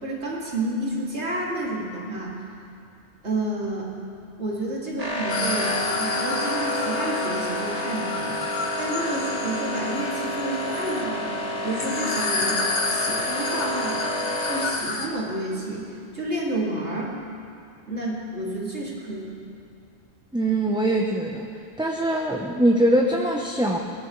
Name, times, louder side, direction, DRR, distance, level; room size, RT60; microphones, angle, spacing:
voice 1, 0.0-2.3 3.2-3.9 4.4-8.4 8.8-11.3 11.6-14.0 14.5-15.9 16.1-17.1 17.9-19.4, right 1 dB, 85° right, -4 dB, 2.9 m, -30 dB
sound 1, 5.0-14.7, left 1 dB, 35° right, 2.3 m, -29 dB
sound 2, 5.3-15.1, left 3 dB, 60° left, 1.4 m, -30 dB
voice 2, 20.3-21.5 21.8-23.8, right 1 dB, 5° right, -1 dB, 0.7 m, -22 dB
21.5 x 18.5 x 3.2 m, 2.4 s
omnidirectional pair, 1.1 m